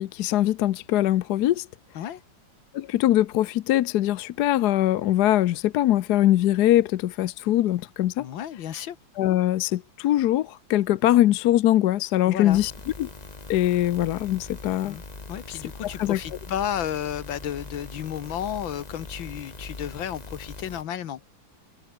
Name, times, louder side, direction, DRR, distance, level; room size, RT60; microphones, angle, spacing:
voice 1, 0.0-1.7 2.7-8.3 9.2-12.7 13.0-13.1 13.5-15.0 15.8-16.2, left 13 dB, 65° left, 1.1 m, -22 dB
voice 2, 8.2-9.0 12.3-12.6 14.8-15.0 15.3-21.2, left 10 dB, 85° left, 1.9 m, -32 dB
sound 1, 12.5-20.8, left 3 dB, 20° left, 1.7 m, -41 dB
omnidirectional pair, 2.1 m